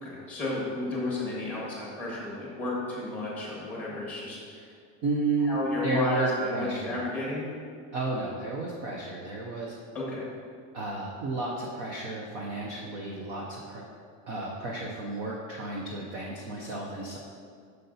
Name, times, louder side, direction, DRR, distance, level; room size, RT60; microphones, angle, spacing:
voice 1, 0.0-4.6 5.4-7.5 9.9-10.3, left 2 dB, 5° left, -5 dB, 1.4 m, -33 dB
voice 2, 5.0-7.0 7.9-9.8 10.7-13.9 14.3-17.2, right 2 dB, 30° right, -2 dB, 0.4 m, -32 dB
8.0 x 6.6 x 2.7 m, 2.2 s
supercardioid pair, 180°, 42 cm